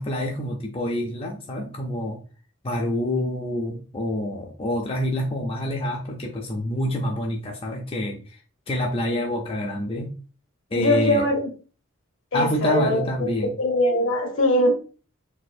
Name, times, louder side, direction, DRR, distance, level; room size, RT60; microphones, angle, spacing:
voice 1, 0.0-2.2 2.6-8.4 8.7-10.1 10.7-11.3 12.3-13.5, left 1 dB, 25° left, 0.4 m, -27 dB
voice 2, 10.7-11.5 12.3-13.0 13.6-14.8, left 1 dB, 65° left, 0.8 m, -21 dB
4.1 x 2.4 x 2.5 m
head